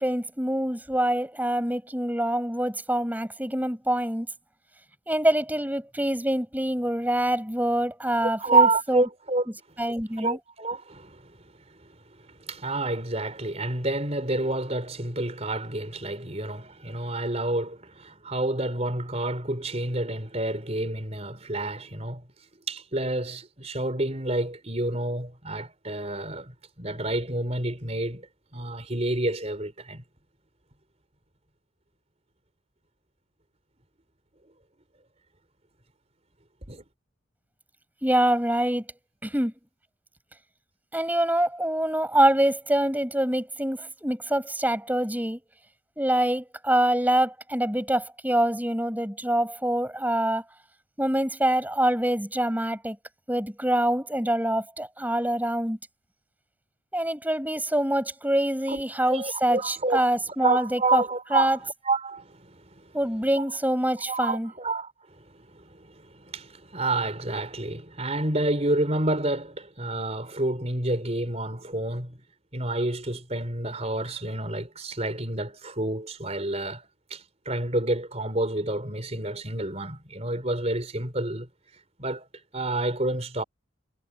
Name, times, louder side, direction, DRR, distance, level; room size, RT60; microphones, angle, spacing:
voice 1, 0.0-4.3 5.1-9.0 9.8-10.4 38.0-38.8 39.2-39.5 40.9-45.4 46.0-50.4 51.0-53.0 53.3-55.8 56.9-61.0 61.3-61.6 62.9-64.5, right 1 dB, 10° right, 7.2 m, -25 dB
voice 2, 8.2-9.4 10.2-11.4 12.5-22.2 22.7-26.5 26.8-28.3 28.5-30.0 36.7-36.8 58.7-58.8 59.1-60.1 60.4-62.8 63.4-63.5 64.1-64.9 65.3-72.2 72.5-81.5 82.0-82.3 82.5-83.4, right 2 dB, 30° right, 4.5 m, -29 dB
head